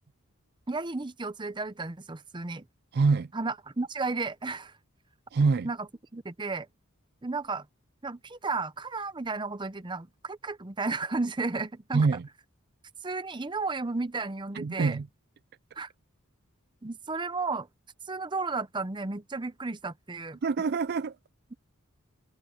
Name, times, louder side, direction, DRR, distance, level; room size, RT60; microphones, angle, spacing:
voice 1, 0.7-2.6 3.3-4.7 5.6-5.9 6.1-6.7 7.2-7.7 8.0-12.1 13.0-15.0 15.8-15.9 16.8-17.7 18.1-20.4, right 3 dB, 20° right, 0.7 m, -33 dB
voice 2, 2.9-3.3 5.3-5.7 11.9-12.3 14.5-15.1 20.4-21.2, right 4 dB, 50° right, 0.4 m, -25 dB
head